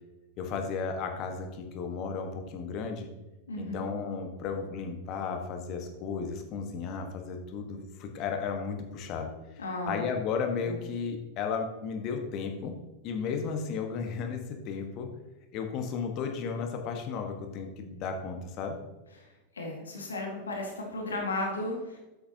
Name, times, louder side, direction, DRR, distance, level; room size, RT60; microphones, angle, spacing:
voice 1, 0.4-3.1 3.6-9.3 9.9-12.7 13.0-15.1 15.5-18.8, left 5 dB, 40° left, 4 dB, 1.3 m, -34 dB
voice 2, 3.5-3.9 9.6-10.1 10.6-10.8 19.2-19.3 19.5-22.0, left 2 dB, 70° left, 1 dB, 1.7 m, -34 dB
10.5 x 7.7 x 2.9 m, 1.1 s
figure-of-eight pair, 90°, 0 cm